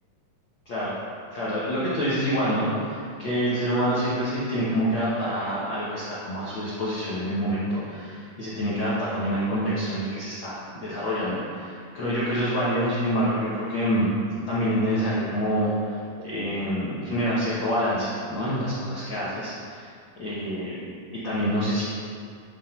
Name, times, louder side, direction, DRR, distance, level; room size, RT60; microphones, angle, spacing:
voice 1, 0.6-1.0 1.3-14.1 14.5-19.9 20.2-20.7 21.2-21.8, equal, 90° left, -9 dB, 1.0 m, -27 dB
10.0 x 3.6 x 4.4 m, 2.2 s
omnidirectional pair, 4.1 m